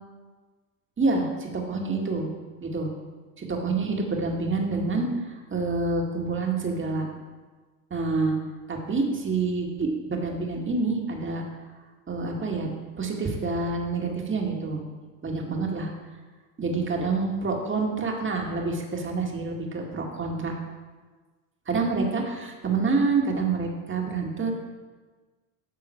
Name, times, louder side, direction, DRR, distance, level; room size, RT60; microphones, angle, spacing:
voice 1, 1.0-2.3 2.6-2.9 3.4-7.1 7.9-8.4 8.7-11.4 12.1-12.7 13.0-14.8 15.2-15.9 16.6-20.5 21.7-24.5, right 3 dB, 25° right, 0 dB, 2.1 m, -27 dB
11.0 x 7.0 x 4.6 m, 1.4 s
hypercardioid pair, 75°, 46 cm